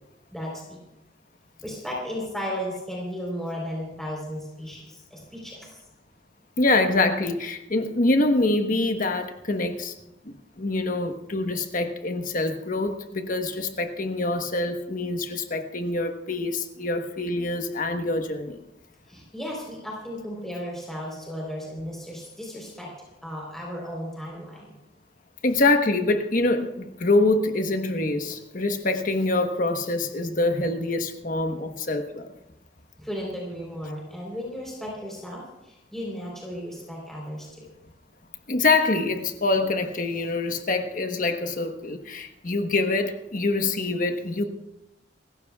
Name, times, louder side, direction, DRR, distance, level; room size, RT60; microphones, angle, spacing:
voice 1, 0.3-0.8 1.6-5.8 19.1-22.9 23.2-24.7 33.0-37.7, equal, ahead, -3 dB, 3.8 m, -35 dB
voice 2, 6.6-9.9 10.2-18.6 25.4-32.3 38.5-44.4, left 2 dB, 45° left, 6 dB, 1.2 m, -25 dB
27.0 x 15.0 x 2.4 m, 0.90 s
head